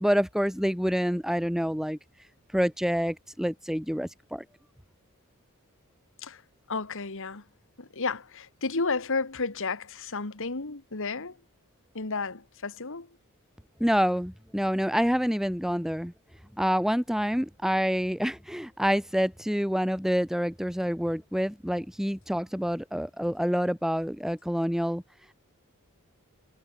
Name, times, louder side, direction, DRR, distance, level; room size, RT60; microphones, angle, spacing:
voice 1, 0.0-2.0 2.5-4.4 13.8-16.1 16.6-25.0, equal, ahead, 3.0 m, -27 dB
voice 2, 6.7-7.4 7.8-11.4 11.9-13.1, left 4 dB, 60° left, 1.8 m, -32 dB
head